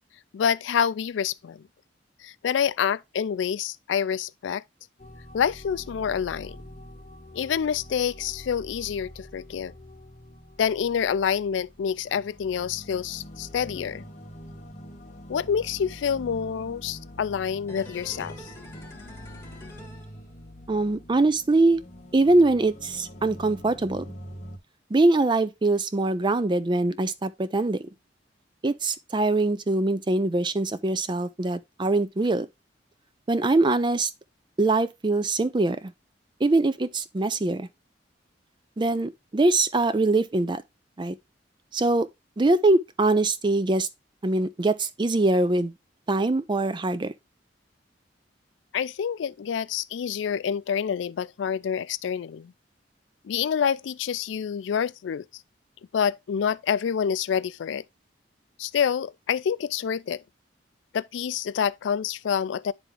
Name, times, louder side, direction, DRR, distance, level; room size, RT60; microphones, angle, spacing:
voice 1, 0.3-1.6 2.2-4.6 5.3-6.6 7.3-9.7 10.6-14.1 15.3-18.5 48.7-52.5 53.2-55.3 55.9-57.8 58.6-60.2 60.9-62.7, left 7 dB, 80° left, 0.3 m, -27 dB
sound 1, 5.0-24.6, equal, 40° left, 1.4 m, -45 dB
sound 2, 17.7-20.8 21.1-21.2, left 1 dB, 15° left, 1.7 m, -46 dB
voice 2, 20.7-21.8 22.1-24.1 24.9-27.8 28.6-32.5 33.3-34.1 34.6-35.9 36.4-37.7 38.8-40.6 41.0-41.2 41.7-42.1 42.4-43.9 44.2-45.7 46.1-47.1, right 2 dB, 25° right, 0.5 m, -23 dB
10.0 x 3.5 x 3.3 m
head